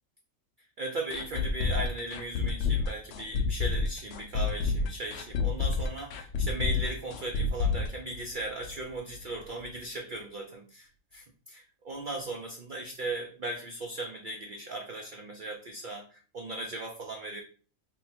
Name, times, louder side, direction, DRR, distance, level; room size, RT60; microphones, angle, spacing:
voice 1, 0.8-17.4, right 2 dB, 80° right, 2 dB, 0.4 m, -37 dB
sound 1, 1.1-8.9 9.1-9.2 9.6-9.7, left 4 dB, 65° left, 0.7 m, -29 dB
3.5 x 2.1 x 4.3 m, 0.40 s
omnidirectional pair, 1.5 m